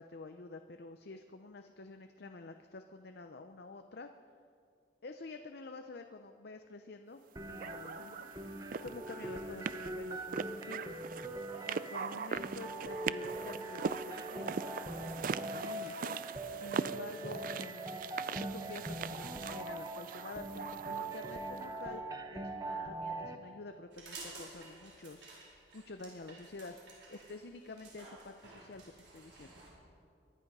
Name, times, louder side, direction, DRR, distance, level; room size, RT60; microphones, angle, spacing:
voice 1, 0.0-4.1 5.0-8.3 8.8-11.0 11.7-14.6 14.8-15.9 16.5-25.4 25.7-29.5, left 3 dB, 60° left, 6 dB, 0.6 m, -49 dB
sound 1, 7.4-23.4, right 2 dB, 20° right, 0.9 m, -42 dB
sound 2, 7.6-21.7, right 6 dB, 50° right, 0.3 m, -41 dB
sound 3, 23.9-29.7, right 3 dB, 70° right, 4.6 m, -53 dB
23.5 x 10.5 x 5.5 m, 2.3 s
head